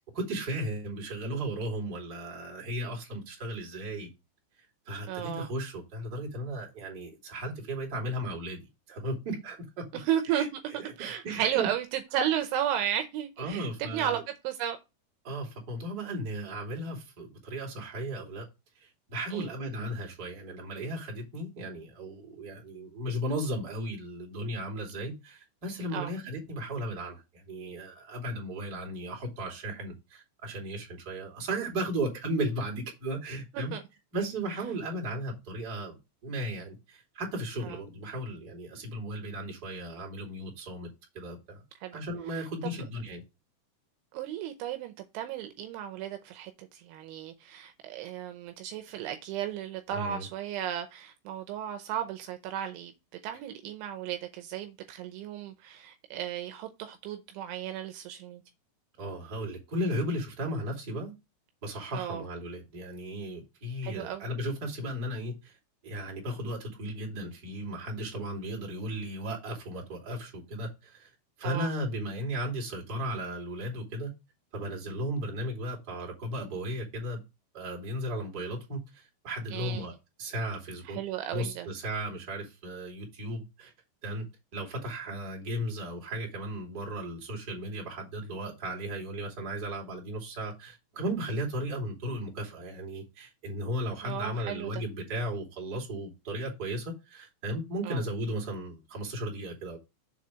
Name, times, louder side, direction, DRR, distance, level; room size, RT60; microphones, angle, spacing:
voice 1, 0.2-4.1 4.9-8.6 8.9-9.8 10.3-11.7 13.4-14.2 15.2-18.4 18.8-33.7 34.1-40.9 41.1-41.6 41.9-43.2 49.9-50.3 59.0-61.1 61.6-65.6 65.8-71.1 71.4-74.1 74.5-77.2 77.5-79.9 80.2-81.0 81.3-83.7 84.0-84.2 84.5-99.8, right 1 dB, 25° right, 2.4 m, -35 dB
voice 2, 5.1-5.5 9.9-10.5 11.0-14.8 19.3-19.5 25.9-26.1 33.5-33.8 37.6-37.8 41.8-42.0 42.3-42.8 44.1-52.9 53.2-58.4 61.9-62.2 63.8-64.2 71.4-71.7 79.5-79.9 80.9-81.7 94.0-94.8 97.8-98.0, right 10 dB, 80° right, 3.1 m, -34 dB
7.3 x 4.1 x 6.2 m
omnidirectional pair, 5.7 m